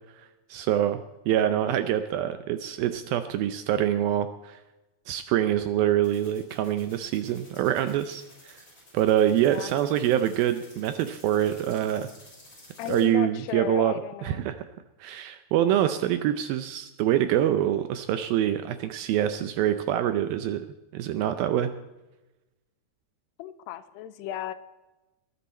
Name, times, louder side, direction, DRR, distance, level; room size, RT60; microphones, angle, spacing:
voice 1, 0.5-1.0 1.3-4.6 5.1-8.6 8.9-12.1 12.9-14.6 15.0-20.6 20.9-21.7, right 11 dB, 80° right, 10 dB, 2.2 m, -25 dB
voice 2, 1.3-1.9 9.5-9.7 12.8-14.4 23.4-24.5, left 11 dB, 90° left, 13 dB, 2.8 m, -35 dB
sound 1, 6.0-13.0, left 2 dB, 20° left, 6.7 m, -52 dB
20.5 x 11.0 x 4.3 m, 1.1 s
omnidirectional pair, 4.8 m